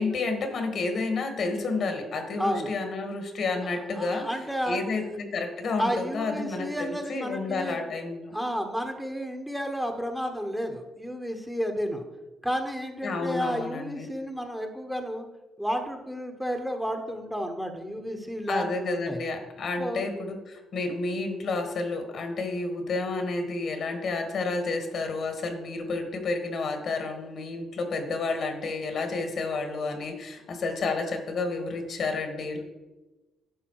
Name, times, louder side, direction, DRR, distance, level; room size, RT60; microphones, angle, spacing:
voice 1, 0.0-4.2 4.7-8.3 13.0-14.1 18.5-32.6, left 3 dB, 60° left, 6 dB, 1.6 m, -30 dB
voice 2, 2.4-2.7 3.9-5.0 5.8-7.8 8.3-12.0 12.4-15.3 15.6-19.2 19.8-20.0, equal, ahead, 4 dB, 1.2 m, -31 dB
10.5 x 5.5 x 4.7 m, 1.1 s
cardioid pair, 90°, 0 cm